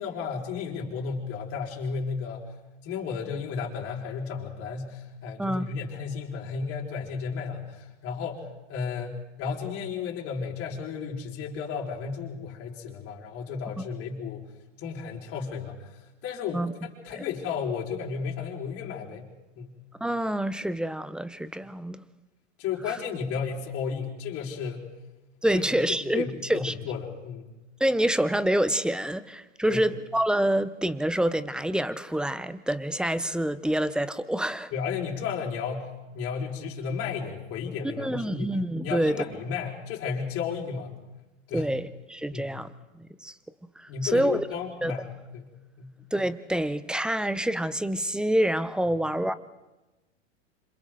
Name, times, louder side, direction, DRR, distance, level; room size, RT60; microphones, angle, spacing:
voice 1, 0.0-2.4 2.8-14.4 14.8-16.6 17.0-19.3 19.6-19.8 22.6-24.8 25.5-27.5 29.7-29.8 34.7-38.5 38.8-40.9 41.5-41.7 42.3-42.5 43.9-45.0 45.3-45.5 45.8-45.9, left 6 dB, 40° left, -2 dB, 5.0 m, -33 dB
voice 2, 20.0-22.0 22.9-23.0 25.4-26.7 27.8-34.7 38.0-39.2 41.5-43.3 43.8-44.4 44.8-44.9 46.1-49.3, right 1 dB, ahead, 15 dB, 0.6 m, -27 dB
28.0 x 26.5 x 4.0 m, 1.1 s
hypercardioid pair, 115°, 37 cm